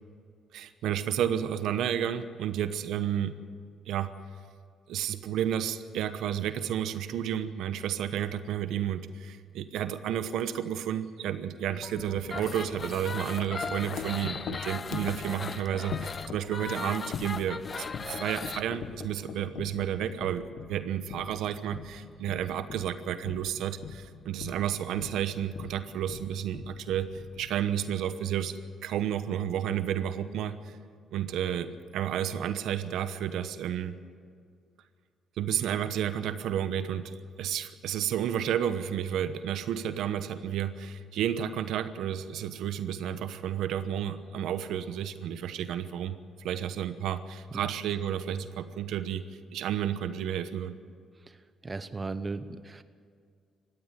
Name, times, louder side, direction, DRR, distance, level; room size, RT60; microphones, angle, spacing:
voice 1, 0.5-3.4 3.9-4.1 4.9-27.1 27.4-30.7 31.1-34.0 35.4-46.2 46.4-49.2 49.5-50.8, right 10 dB, 85° right, 11 dB, 1.0 m, -31 dB
Wind chime, 11.8-28.0, left 7 dB, 70° left, 1.5 m, -42 dB
sound 1, 12.2-18.6, left 4 dB, 35° left, 0.8 m, -38 dB
voice 2, 51.6-52.8, right 3 dB, 25° right, 12 dB, 1.0 m, -36 dB
19.0 x 15.0 x 9.2 m, 2.2 s
cardioid pair, 90°, 0 cm